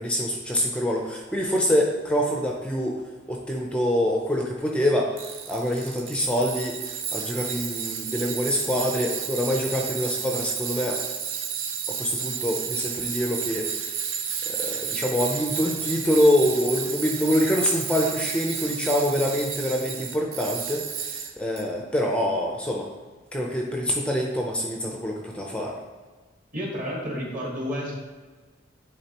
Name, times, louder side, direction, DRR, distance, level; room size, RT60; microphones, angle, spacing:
voice 1, 0.0-3.0 3.3-5.1 5.5-6.8 7.1-11.0 11.9-13.7 14.5-21.1 21.4-22.9 23.3-25.8, equal, 5° left, 0 dB, 0.5 m, -25 dB
Tools, 5.2-21.6, right 7 dB, 80° right, 0.7 m, -32 dB
voice 2, 26.5-28.0, equal, 40° right, -4 dB, 1.6 m, -31 dB
9.9 x 3.7 x 2.9 m, 1.3 s
head